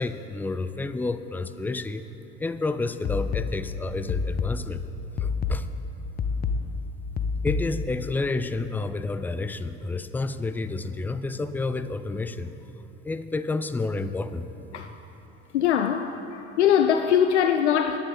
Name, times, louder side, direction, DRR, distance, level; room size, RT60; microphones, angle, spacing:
voice 1, 0.0-2.0 2.4-4.8 5.2-5.7 7.4-12.5 13.0-14.5, left 3 dB, 5° left, 0.3 m, -30 dB
sound 1, 3.0-8.0, left 4 dB, 25° left, 0.7 m, -29 dB
voice 2, 15.5-18.0, left 9 dB, 75° left, 0.5 m, -22 dB
19.5 x 9.6 x 3.7 m
figure-of-eight pair, 65°, 35 cm